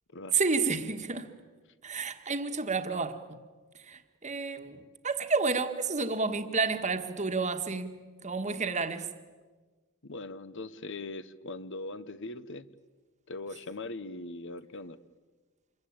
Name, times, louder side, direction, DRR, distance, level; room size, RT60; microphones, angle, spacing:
voice 1, 0.3-1.3 1.8-3.2 3.7-9.1, right 4 dB, 30° right, 1.5 m, -30 dB
voice 2, 10.0-12.7 13.3-15.0, left 2 dB, 55° left, 1.0 m, -40 dB
27.0 x 22.0 x 8.8 m
head